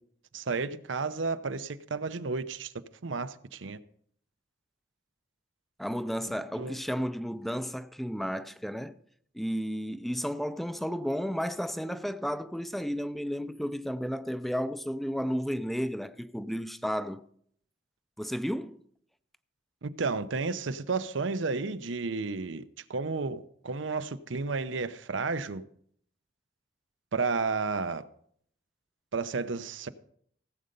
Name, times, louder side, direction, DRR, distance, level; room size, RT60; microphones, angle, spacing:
voice 1, 0.3-2.7 3.0-3.8 6.6-6.8 19.8-22.6 22.9-25.6 27.1-28.0 29.1-29.9, right 4 dB, 85° right, 0.7 m, -32 dB
voice 2, 5.8-9.0 9.3-17.2 18.2-18.8, equal, ahead, 0.4 m, -33 dB
16.5 x 7.8 x 5.3 m
head